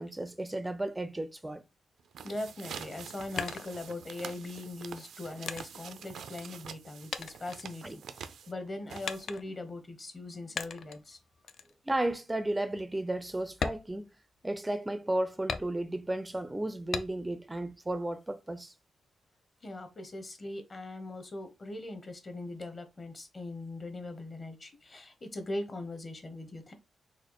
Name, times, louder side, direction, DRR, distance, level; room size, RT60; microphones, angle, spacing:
voice 1, 0.0-1.6 7.8-7.9 11.9-14.0 14.4-18.7, right 1 dB, 15° right, 0.4 m, -33 dB
sound 1, 2.0-9.5, right 7 dB, 80° right, 0.4 m, -46 dB
voice 2, 2.2-11.2 19.6-26.7, left 2 dB, 30° left, 0.8 m, -40 dB
sound 2, 3.4-4.3 5.0-6.8 7.1-8.3 9.0-9.7 10.6-11.0 11.5-11.7 12.2-12.3 12.7-12.9 13.5-14.7 15.5-16.1 16.9-17.5 17.9-18.7, left 6 dB, 60° left, 0.4 m, -39 dB
4.1 x 2.4 x 2.9 m
wide cardioid pair, 130°, 0 cm